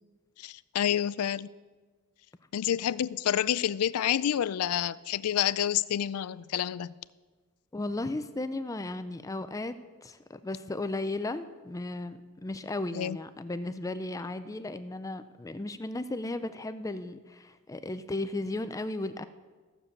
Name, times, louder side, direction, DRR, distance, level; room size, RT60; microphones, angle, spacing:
voice 1, 0.4-1.5 2.5-6.9 12.9-13.2, left 10 dB, 85° left, 0.4 m, -28 dB
voice 2, 7.7-9.7 10.0-19.3, left 2 dB, 15° left, 0.4 m, -35 dB
15.0 x 6.8 x 7.2 m
head